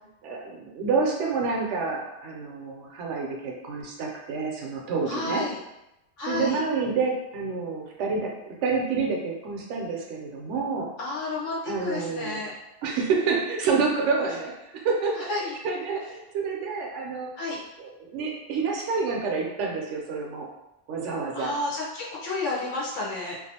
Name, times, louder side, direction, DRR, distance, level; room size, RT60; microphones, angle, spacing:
voice 1, 0.2-5.4 6.3-8.3 8.6-10.9 11.7-12.4 12.8-17.3 17.8-20.5 20.9-21.5, right 4 dB, 75° right, 0 dB, 0.9 m, -28 dB
voice 2, 5.1-5.6 6.2-6.6 11.0-12.5 15.2-15.6 17.4-17.6 21.3-23.4, left 2 dB, 85° left, -4 dB, 0.9 m, -31 dB
2.5 x 2.3 x 2.7 m, 0.90 s
omnidirectional pair, 1.2 m